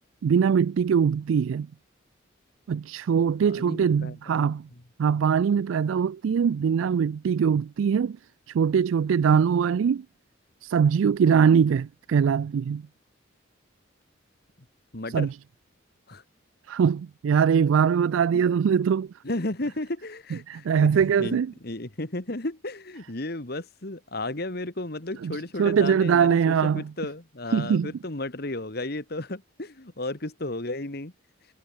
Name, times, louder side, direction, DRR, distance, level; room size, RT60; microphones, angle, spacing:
voice 1, 0.2-1.7 2.7-4.7 5.0-8.2 8.5-10.1 10.6-12.8 15.1-15.3 16.7-19.1 20.3-21.5 25.2-25.3 25.6-26.8 27.5-27.9, right 7 dB, 80° right, 0.3 m, -22 dB
voice 2, 3.4-4.4 14.9-15.3 16.1-16.2 18.3-18.4 19.2-20.9 21.2-31.1, left 2 dB, 50° left, 1.9 m, -34 dB
head